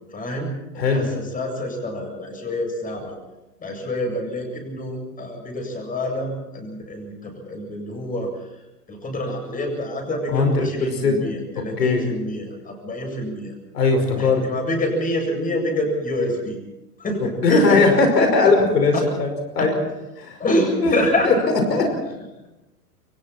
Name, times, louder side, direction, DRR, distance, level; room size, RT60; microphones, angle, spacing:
voice 1, 0.1-3.2 3.6-8.6 8.9-13.5 14.1-16.6 17.0-17.9 18.4-18.5 18.9-19.0 19.6-19.7 20.4-21.3 21.8-22.0, left 1 dB, 15° left, 2 dB, 7.8 m, -26 dB
voice 2, 10.8-11.2 11.8-12.0 13.7-14.4 17.4-19.3 19.5-19.7 20.2-20.4 20.8-21.0 21.2-21.3 21.7-21.8, left 3 dB, 80° left, 5 dB, 5.5 m, -18 dB
29.5 x 23.5 x 4.5 m, 0.99 s
hypercardioid pair, 110°, 48 cm